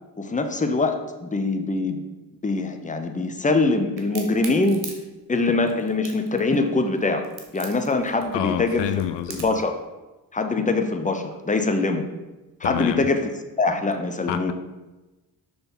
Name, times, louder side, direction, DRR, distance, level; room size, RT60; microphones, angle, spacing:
voice 1, 0.2-2.0 2.4-4.9 5.3-8.9 9.3-9.8 10.3-12.1 12.6-13.3 13.6-14.5, left 3 dB, 15° left, 7 dB, 0.8 m, -23 dB
Crack, 4.0-9.7, right 6 dB, 70° right, 1.3 m, -40 dB
voice 2, 8.3-9.4 12.6-13.1 14.3-14.5, left 11 dB, 70° left, 10 dB, 0.5 m, -28 dB
5.8 x 3.5 x 5.6 m, 1.1 s
supercardioid pair, 55°, 44 cm